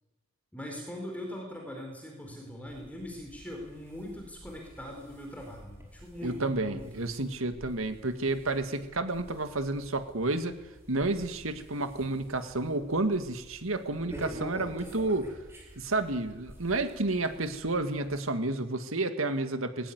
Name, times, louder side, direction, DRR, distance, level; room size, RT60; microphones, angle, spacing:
voice 1, 0.5-7.1, left 1 dB, 5° left, 1 dB, 4.4 m, -41 dB
sound 1, 2.7-18.2, equal, 10° right, 5.2 m, -49 dB
voice 2, 6.2-10.6 10.9-15.3 15.8-19.9, right 2 dB, 80° right, 9 dB, 2.0 m, -30 dB
20.5 x 17.5 x 9.6 m, 1.1 s
head